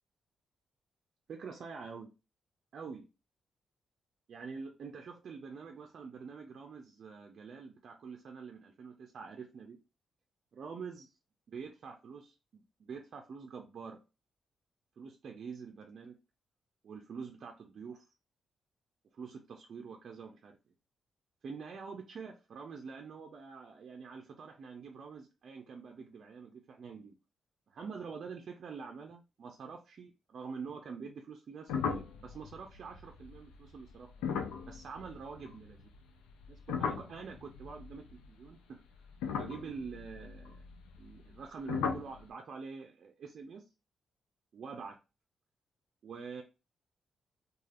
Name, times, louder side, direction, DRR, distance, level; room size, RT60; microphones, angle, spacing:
voice 1, 1.3-2.1 2.7-3.1 4.3-9.8 10.5-11.1 11.5-14.0 15.0-16.2 16.8-18.0 19.1-20.6 21.4-27.2 27.7-34.3 34.7-35.9 36.5-38.8 39.3-40.6 41.0-43.6 44.5-45.0 46.0-46.4, right 5 dB, 65° right, 0.4 m, -46 dB
sound 1, 31.7-36.0 36.3-38.5 39.1-41.4 41.7-42.2, left 6 dB, 85° left, 0.4 m, -38 dB
3.2 x 2.4 x 2.4 m
hypercardioid pair, 45°, 0 cm